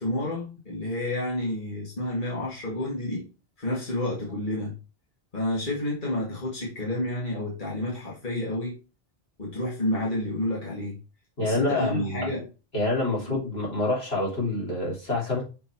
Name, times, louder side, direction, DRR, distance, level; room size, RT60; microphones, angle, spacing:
voice 1, 0.0-3.3 3.6-4.7 5.3-8.7 9.4-11.0 11.4-12.4 13.3-13.4, left 1 dB, 50° left, -5 dB, 2.3 m, -30 dB
voice 2, 11.4-12.3 12.7-15.4, left 2 dB, 75° left, -5 dB, 3.5 m, -27 dB
6.7 x 4.0 x 4.6 m, 0.32 s
omnidirectional pair, 1.1 m